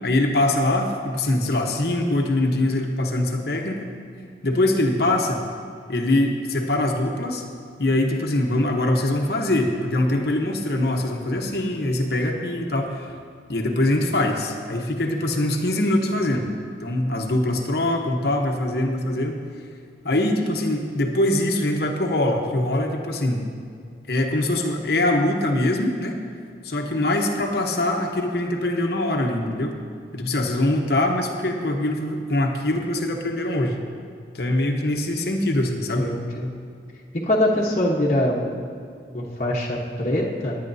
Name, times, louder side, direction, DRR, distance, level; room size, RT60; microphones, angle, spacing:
voice 1, 0.0-3.9 4.4-5.4 5.9-7.5 7.8-13.1 13.5-16.5 16.8-19.4 20.0-23.5 24.1-26.2 26.6-29.8 30.1-33.8 34.3-36.1, left 1 dB, 60° left, 2 dB, 1.0 m, -23 dB
voice 2, 35.9-36.5 37.3-38.6 39.1-40.6, left 1 dB, 40° left, -4 dB, 1.1 m, -23 dB
19.0 x 9.5 x 2.7 m, 2.3 s
head